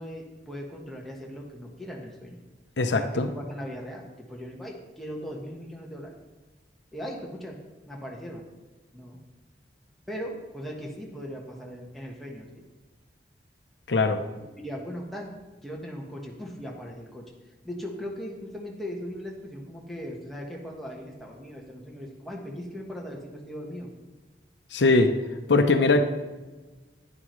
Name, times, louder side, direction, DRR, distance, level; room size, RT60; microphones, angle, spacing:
voice 1, 0.0-2.4 2.9-6.1 6.9-7.6 7.9-8.4 8.9-9.2 10.1-12.6 14.4-15.3 15.6-17.2 17.6-23.9, equal, ahead, -2 dB, 1.3 m, -38 dB
voice 2, 2.8-3.3 13.9-14.2 24.7-25.1 25.5-26.0, left 3 dB, 85° left, 7 dB, 0.7 m, -21 dB
11.0 x 9.6 x 3.2 m, 1.2 s
head